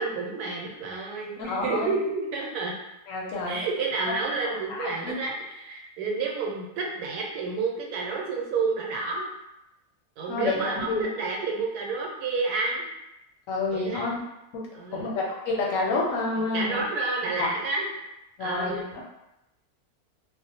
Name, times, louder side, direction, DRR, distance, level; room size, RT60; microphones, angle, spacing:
voice 1, 0.0-2.7 3.5-9.3 10.2-12.9 13.7-14.1 14.7-15.1 16.5-17.9 18.4-18.8, right 4 dB, 85° right, -1 dB, 1.1 m, -30 dB
voice 2, 1.4-1.9 3.1-3.6 4.7-5.1 10.3-11.1 13.5-14.2 14.5-14.6 14.9-16.8 17.4-17.5 18.4-19.0, left 3 dB, 70° left, -3 dB, 0.9 m, -28 dB
2.5 x 2.0 x 2.7 m, 0.90 s
omnidirectional pair, 1.6 m